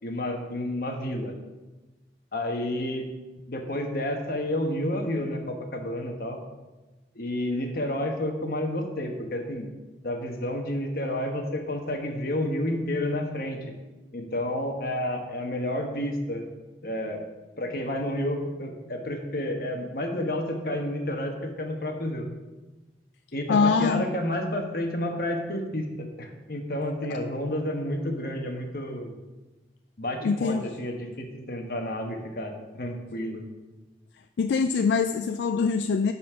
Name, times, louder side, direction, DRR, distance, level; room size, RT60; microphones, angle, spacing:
voice 1, 0.0-1.3 2.3-3.1 3.5-6.4 7.1-9.7 10.0-13.6 14.1-16.5 16.8-17.3 17.6-22.3 23.3-29.2 30.0-33.4, left 1 dB, 55° left, 1.2 m, -30 dB
voice 2, 23.5-24.1 27.1-27.2 30.2-30.7 34.4-36.1, left 5 dB, 75° left, 0.3 m, -24 dB
10.0 x 4.3 x 6.1 m
head